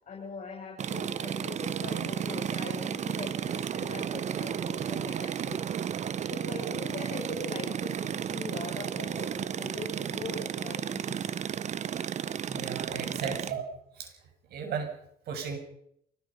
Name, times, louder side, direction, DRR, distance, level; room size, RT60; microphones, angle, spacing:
voice 1, 0.0-5.7 6.3-11.4 12.9-13.4, left 4 dB, 45° left, -1 dB, 7.5 m, -41 dB
sound 1, 0.8-13.5, right 8 dB, 45° right, 0.9 m, -33 dB
voice 2, 12.4-13.6 13.9-14.1 14.5-14.9 15.3-15.6, right 6 dB, 70° right, 5 dB, 6.5 m, -35 dB
24.0 x 20.5 x 5.6 m, 0.71 s
cardioid pair, 110°, 17 cm